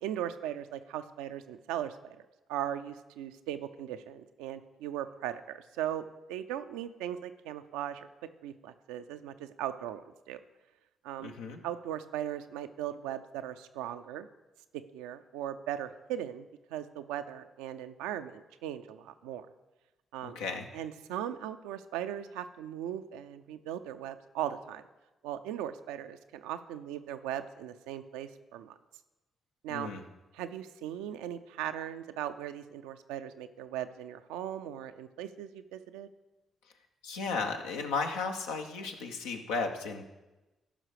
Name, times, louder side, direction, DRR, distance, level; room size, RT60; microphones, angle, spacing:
voice 1, 0.0-8.1 8.4-10.4 11.0-11.3 11.6-14.3 14.9-16.5 16.7-19.5 20.1-20.4 20.7-24.8 25.2-28.7 29.6-29.9 30.3-36.1, right 11 dB, 80° right, 9 dB, 0.5 m, -38 dB
voice 2, 11.2-11.6 20.2-20.7 29.7-30.0 37.0-40.1, left 4 dB, 85° left, 3 dB, 0.9 m, -34 dB
14.0 x 5.6 x 4.9 m, 1.1 s
hypercardioid pair, 45°, 0 cm